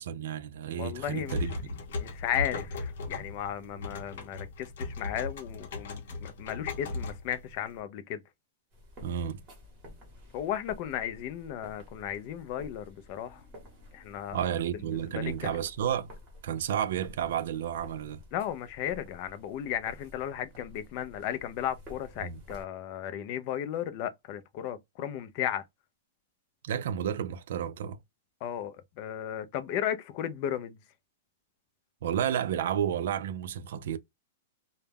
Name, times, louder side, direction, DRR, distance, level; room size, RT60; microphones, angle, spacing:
voice 1, 0.0-1.5 9.0-9.4 14.3-16.1 16.4-18.2 22.2-22.4 26.6-28.0 32.0-34.0, right 9 dB, 60° right, 0.3 m, -31 dB
voice 2, 0.8-1.4 2.0-8.2 10.3-13.4 13.9-14.4 15.1-15.6 18.3-25.6 28.4-30.8, left 10 dB, 35° left, 0.3 m, -35 dB
sound 1, 0.9-7.8, left 3 dB, 60° left, 0.7 m, -37 dB
sound 2, 8.7-22.6, left 1 dB, 20° right, 0.9 m, -51 dB
2.2 x 2.0 x 3.3 m
supercardioid pair, 175°, 0 cm